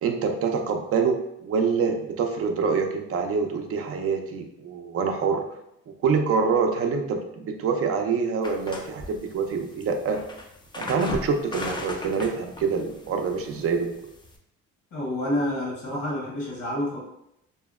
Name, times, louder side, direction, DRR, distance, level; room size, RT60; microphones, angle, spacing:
voice 1, 0.0-5.5 6.0-10.2 10.8-13.9, right 5 dB, 50° right, 5 dB, 0.4 m, -26 dB
sound 1, 8.4-14.4, left 2 dB, 15° left, 0.3 m, -38 dB
voice 2, 14.9-17.0, left 1 dB, 75° left, -3 dB, 1.1 m, -28 dB
2.7 x 2.1 x 2.3 m, 0.80 s
cardioid pair, 90°, 30 cm